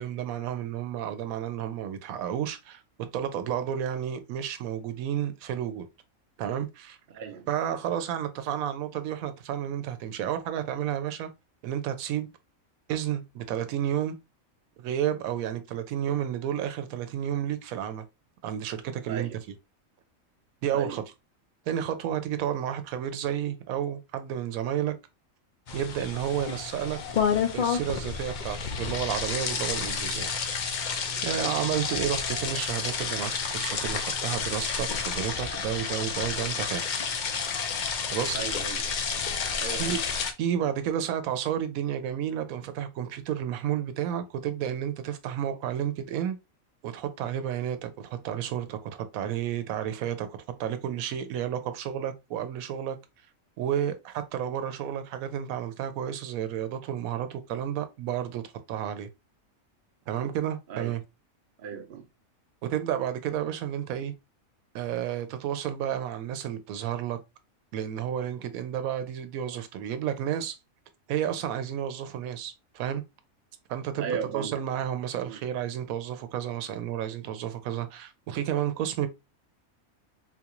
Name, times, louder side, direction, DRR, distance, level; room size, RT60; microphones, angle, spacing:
voice 1, 0.0-2.8 3.1-5.9 6.4-7.0 7.5-11.3 11.6-12.3 12.9-14.1 14.8-18.0 18.4-19.3 20.6-21.0 21.7-25.0 25.7-27.0 27.5-30.3 31.2-36.8 38.1-38.4 39.8-40.0 40.4-46.4 46.8-50.3 50.6-53.0 53.6-58.4 58.7-59.1 60.1-61.0 62.6-64.1 64.7-67.2 67.7-70.6 71.1-73.0 73.7-79.1, right 10 dB, 85° right, 1.0 m, -31 dB
voice 2, 7.1-7.5 19.0-19.4 20.7-21.0 31.3-31.7 38.3-38.9 39.6-40.0 60.7-61.0 61.6-62.1 74.0-74.6 75.2-75.4, right 7 dB, 55° right, 0.6 m, -36 dB
sound 1, 25.7-40.3, left 6 dB, 70° left, 0.4 m, -30 dB
3.9 x 2.4 x 2.9 m
omnidirectional pair, 1.4 m